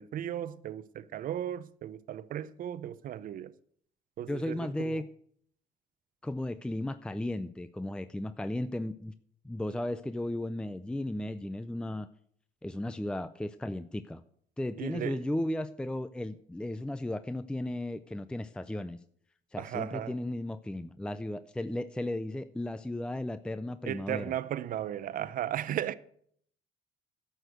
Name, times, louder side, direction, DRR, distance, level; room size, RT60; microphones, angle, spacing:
voice 1, 0.0-3.5 4.2-5.0 14.8-15.2 19.6-20.1 23.8-25.9, right 11 dB, 55° right, 0.7 m, -36 dB
voice 2, 4.3-5.1 6.2-9.1 9.4-12.1 12.6-14.2 14.6-19.0 19.5-24.3, left 1 dB, 5° left, 0.4 m, -35 dB
11.0 x 6.6 x 7.8 m
cardioid pair, 110°, 17 cm